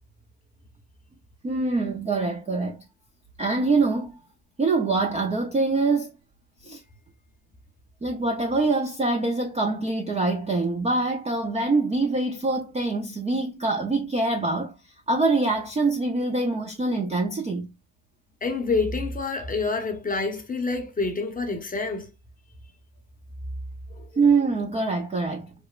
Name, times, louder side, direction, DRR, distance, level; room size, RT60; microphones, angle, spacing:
voice 1, 1.4-2.8 3.4-4.2 4.6-6.1 6.6-6.8 8.0-17.7 24.2-25.5, right 3 dB, 15° right, 0.4 m, -24 dB
voice 2, 18.4-22.1 23.9-24.0, left 3 dB, 20° left, 0.7 m, -27 dB
3.0 x 2.1 x 2.2 m
supercardioid pair, 75°, 47 cm